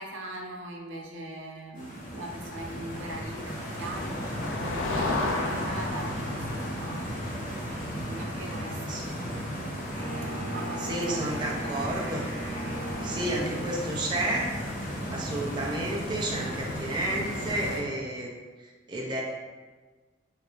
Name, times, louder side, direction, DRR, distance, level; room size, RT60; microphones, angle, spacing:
voice 1, 0.0-9.4 10.5-11.3 11.5-12.0, right 1 dB, 80° right, 1 dB, 0.5 m, -41 dB
Stream, 1.7-17.8, equal, 45° left, 0.8 m, -35 dB
Motor vehicle (road), 2.9-10.7, left 2 dB, 85° left, 0.4 m, -36 dB
voice 2, 8.9-9.4 10.8-12.2 13.0-18.3 18.6-19.2, right 1 dB, 25° right, -2 dB, 0.4 m, -32 dB
Wind instrument woodwind instrument, 9.9-14.1, right 1 dB, 50° right, 1.0 m, -38 dB
4.5 x 2.3 x 2.4 m, 1.3 s
head